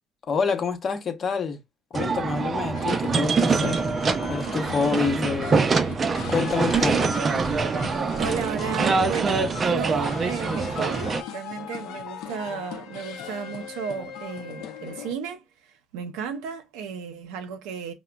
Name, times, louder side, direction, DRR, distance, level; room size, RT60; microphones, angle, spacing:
voice 1, 0.3-1.6 1.9-3.8 4.3-5.6 6.3-7.1, left 5 dB, 45° left, 0.7 m, -27 dB
sound 1, 1.9-11.2, right 4 dB, 35° right, 0.4 m, -24 dB
sound 2, 2.7-15.1, left 8 dB, 80° left, 0.5 m, -39 dB
voice 2, 6.7-7.1 7.7-7.8 8.2-15.4 15.9-17.9, right 7 dB, 90° right, 0.6 m, -33 dB
4.8 x 2.1 x 2.2 m
supercardioid pair, 85°, 0 cm